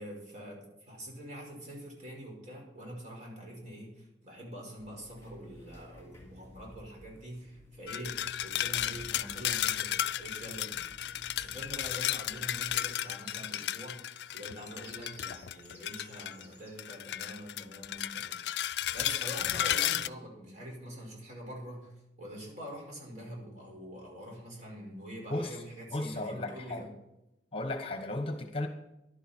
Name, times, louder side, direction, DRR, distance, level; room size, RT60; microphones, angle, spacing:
voice 1, 0.0-10.9 11.4-18.6 18.9-21.9 22.2-26.9, equal, 45° right, -1 dB, 5.1 m, -45 dB
sound 1, 4.8-13.0, left 1 dB, 15° left, 2.8 m, -54 dB
sound 2, 7.9-16.4 16.8-20.1, left 12 dB, 65° left, 0.4 m, -34 dB
sound 3, 13.2-16.7, left 1 dB, 10° right, 3.1 m, -58 dB
voice 2, 25.9-26.8 27.5-28.7, left 1 dB, 30° left, 6 dB, 1.2 m, -34 dB
14.5 x 11.5 x 4.4 m, 0.93 s
head